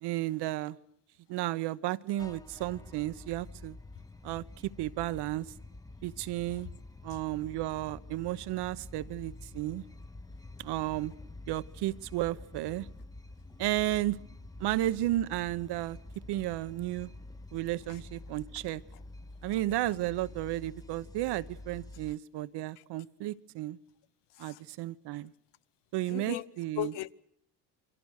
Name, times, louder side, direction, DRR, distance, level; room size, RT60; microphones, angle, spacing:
voice 1, 0.0-0.8 1.3-3.8 4.2-5.5 6.0-6.7 7.0-9.8 10.6-11.1 11.5-12.9 13.6-14.2 14.6-16.0 16.3-17.1 17.5-18.8 19.4-23.8 24.4-25.3 25.9-26.9, right 15 dB, 65° right, 1.0 m, -33 dB
sound 1, 2.2-22.1, left 2 dB, 10° left, 0.9 m, -48 dB
voice 2, 26.0-26.5 26.8-27.1, left 14 dB, 70° left, 0.9 m, -38 dB
29.0 x 23.5 x 6.5 m
supercardioid pair, 85°, 43 cm